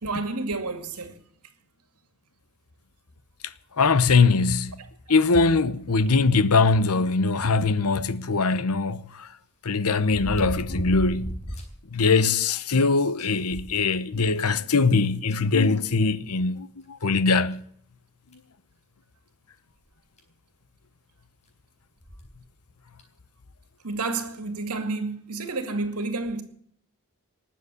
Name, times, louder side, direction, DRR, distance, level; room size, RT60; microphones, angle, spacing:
voice 1, 0.0-1.2 23.8-26.4, right 3 dB, 85° right, 2.3 m, -30 dB
voice 2, 3.8-4.7 5.1-9.3 9.6-11.4 11.9-17.6, left 4 dB, 80° left, 0.9 m, -22 dB
sound 1, 8.1-8.2 10.0-11.8 12.2-12.3 12.7-12.8 13.2-14.3 15.3-15.4 16.8-16.9 17.5-17.6 18.3-18.5 19.9-20.0 20.2-20.3 22.0-22.3 23.0-23.1, equal, 30° left, 4.1 m, -33 dB
19.5 x 7.6 x 8.2 m
head